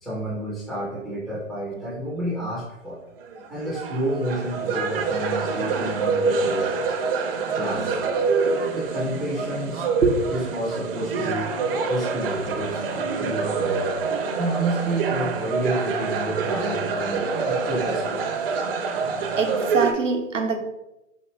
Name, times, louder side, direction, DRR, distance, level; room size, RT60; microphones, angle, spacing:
voice 1, 0.0-3.0 3.5-6.8 7.5-8.0 8.7-9.8 10.3-11.6 11.9-18.3, right 1 dB, ahead, 0.3 m, -30 dB
sound 1, 3.2-19.9, right 4 dB, 50° right, 0.6 m, -26 dB
voice 2, 19.4-20.6, right 4 dB, 90° right, 0.8 m, -23 dB
4.4 x 2.6 x 3.1 m
figure-of-eight pair, 120°, 37 cm